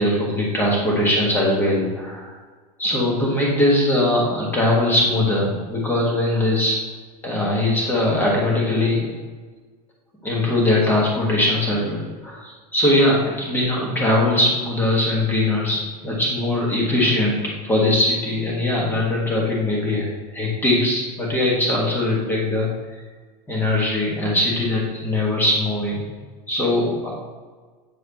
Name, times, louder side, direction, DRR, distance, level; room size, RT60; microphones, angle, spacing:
voice 1, 0.0-2.3 2.8-6.8 7.2-9.1 10.2-22.7 23.5-26.0 26.5-27.1, left 1 dB, 10° left, -3 dB, 1.6 m, -21 dB
8.3 x 4.7 x 3.0 m, 1.4 s
supercardioid pair, 155°, 20 cm